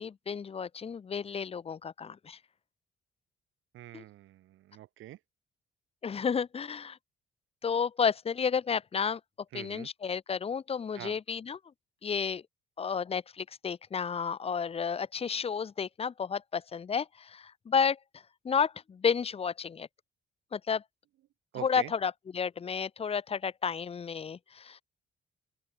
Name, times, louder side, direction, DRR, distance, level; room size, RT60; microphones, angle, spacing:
voice 1, 0.0-2.4 3.9-4.0 6.0-7.0 7.6-9.2 9.5-11.6 12.0-12.4 12.8-18.0 18.4-19.9 20.5-20.8 21.6-24.8, left 6 dB, 30° left, 0.6 m, -31 dB
voice 2, 3.7-5.2 9.5-9.9 11.0-11.2 21.5-21.9, right 14 dB, 80° right, 2.7 m, -44 dB
open air
cardioid pair, 90°, 20 cm